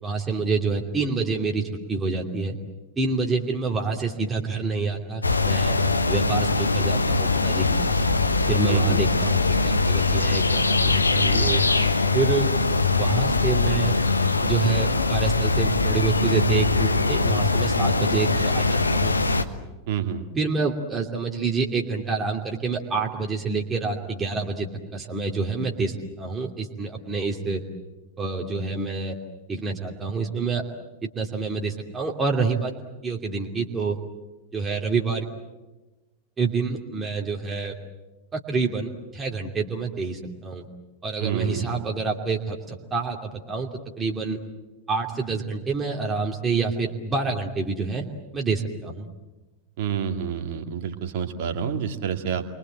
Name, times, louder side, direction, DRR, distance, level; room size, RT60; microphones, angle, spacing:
voice 1, 0.0-1.6 1.9-2.6 3.0-5.8 6.1-8.0 8.5-9.4 9.6-11.6 12.1-12.5 13.0-14.0 14.4-19.1 20.3-27.6 28.2-29.1 29.5-30.6 31.1-32.7 33.0-34.0 34.5-35.3 36.4-37.7 38.3-40.6 41.0-43.7 44.0-44.4 44.9-48.1 48.3-49.1, right 4 dB, 20° right, 0 dB, 2.8 m, -27 dB
sound 1, 5.2-19.4, left 3 dB, 80° left, 1.3 m, -22 dB
voice 2, 8.7-9.0 19.9-20.3 41.2-41.8 49.8-52.4, right 8 dB, 50° right, 5 dB, 2.5 m, -28 dB
29.5 x 23.5 x 7.7 m, 1.1 s
figure-of-eight pair, 90°, 0 cm